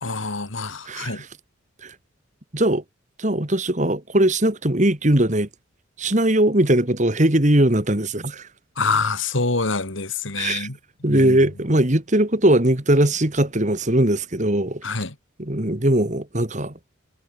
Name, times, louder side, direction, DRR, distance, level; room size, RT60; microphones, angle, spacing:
voice 1, 0.0-1.2 8.8-10.8 11.1-11.4 14.8-15.1, left 4 dB, 75° left, 2.8 m, -26 dB
voice 2, 0.9-1.3 1.8-1.9 2.5-2.8 3.2-5.5 6.0-8.5 10.4-10.7 11.0-14.8 15.4-16.7, right 1 dB, 35° right, 2.3 m, -20 dB
head